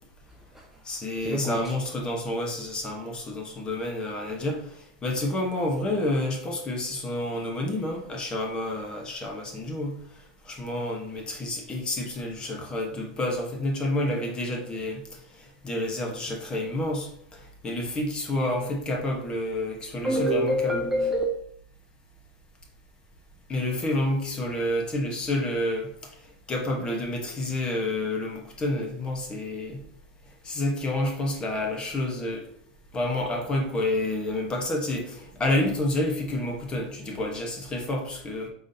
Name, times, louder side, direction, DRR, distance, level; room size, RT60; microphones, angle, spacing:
voice 1, 0.3-1.7 20.0-21.3, equal, 10° right, 0.5 m, -27 dB
voice 2, 0.8-4.7 5.0-10.0 10.5-15.0 15.6-17.1 17.6-20.8 23.5-25.9 26.5-29.8 30.4-32.4 32.9-38.5, left 1 dB, 20° left, 1.1 m, -29 dB
4.8 x 4.0 x 2.7 m
supercardioid pair, 135°, 4 cm